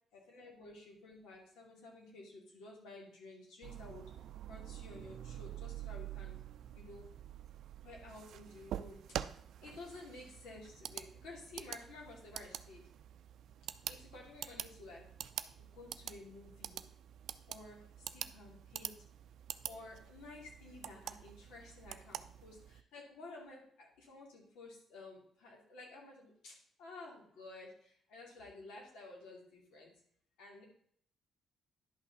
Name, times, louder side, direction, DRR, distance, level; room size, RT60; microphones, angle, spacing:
voice 1, 0.1-4.0 4.5-6.4 6.7-7.1 7.8-9.2 9.6-12.9 13.9-15.1 15.6-16.8 17.5-19.0 19.6-29.9 30.4-30.6, left 2 dB, 90° left, -1 dB, 2.6 m, -53 dB
sound 1, 3.6-22.8, right 10 dB, 75° right, 0.4 m, -47 dB
10.5 x 5.7 x 4.0 m, 0.64 s
cardioid pair, 90°, 0 cm